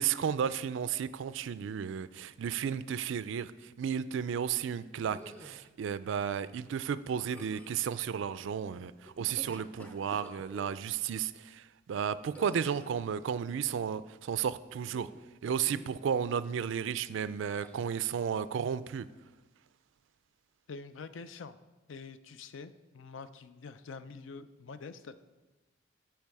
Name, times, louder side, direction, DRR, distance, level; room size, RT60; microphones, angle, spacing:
voice 1, 0.0-15.1 15.4-19.1, right 8 dB, 70° right, 15 dB, 0.3 m, -33 dB
sound 1, 5.1-5.7 7.2-7.8 9.1-10.8 12.3-13.0 14.8-15.3 15.6-16.0 17.4-17.9, equal, 10° left, 0.6 m, -50 dB
voice 2, 20.7-21.6 21.9-25.2, left 4 dB, 70° left, 12 dB, 0.5 m, -46 dB
13.0 x 4.5 x 4.7 m, 1.2 s
head